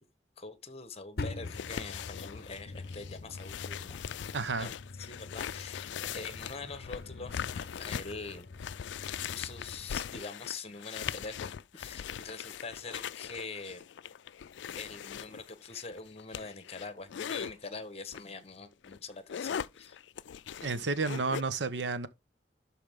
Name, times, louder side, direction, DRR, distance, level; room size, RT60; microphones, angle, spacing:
voice 1, 0.4-4.0 4.5-4.7 5.0-8.5 9.3-13.8 14.7-20.0, left 4 dB, 35° left, 1.2 m, -44 dB
sound 1, 1.2-10.0, left 3 dB, 55° left, 0.7 m, -45 dB
sound 2, 1.4-17.5 18.1-18.3 18.7-21.4, left 8 dB, 85° left, 0.4 m, -41 dB
voice 2, 4.3-4.7 20.6-22.1, right 4 dB, 80° right, 0.9 m, -31 dB
12.0 x 4.6 x 3.6 m
head